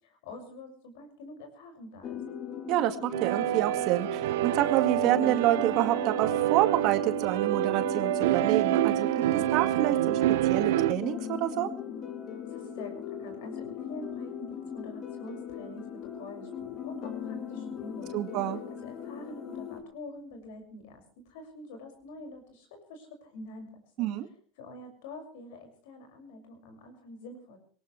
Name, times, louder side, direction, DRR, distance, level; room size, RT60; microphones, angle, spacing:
voice 1, 0.0-2.2 12.5-18.3 18.8-24.1 24.6-27.6, left 2 dB, 75° left, 5 dB, 6.5 m, -46 dB
sound 1, 2.0-19.8, left 8 dB, 40° left, 3.0 m, -39 dB
voice 2, 2.7-10.2 10.5-11.7 18.1-18.6 24.0-24.3, right 14 dB, 60° right, 8 dB, 2.1 m, -28 dB
sound 2, 3.1-10.9, right 15 dB, 80° right, 0.8 m, -27 dB
21.0 x 19.0 x 3.4 m, 0.43 s
hypercardioid pair, 100°, 0 cm